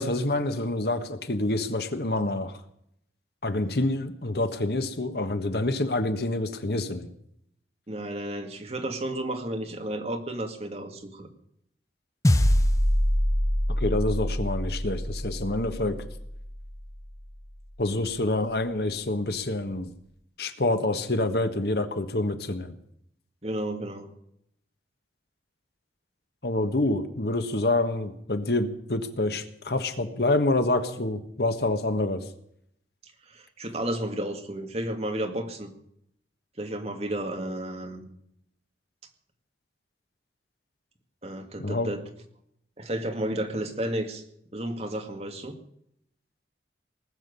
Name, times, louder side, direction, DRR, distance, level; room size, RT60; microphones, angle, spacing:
voice 1, 0.0-2.5 3.4-7.1 13.8-16.0 17.8-19.9 20.4-22.7 26.4-32.2 41.6-41.9, left 2 dB, 60° left, 9 dB, 1.4 m, -27 dB
voice 2, 7.9-11.3 23.4-24.1 33.3-35.7 36.6-38.0 41.2-42.0 42.8-44.2 44.5-45.5, right 1 dB, 35° right, 5 dB, 2.0 m, -32 dB
sound 1, 12.2-16.8, equal, 20° left, 0.8 m, -25 dB
19.5 x 7.4 x 9.6 m, 0.73 s
head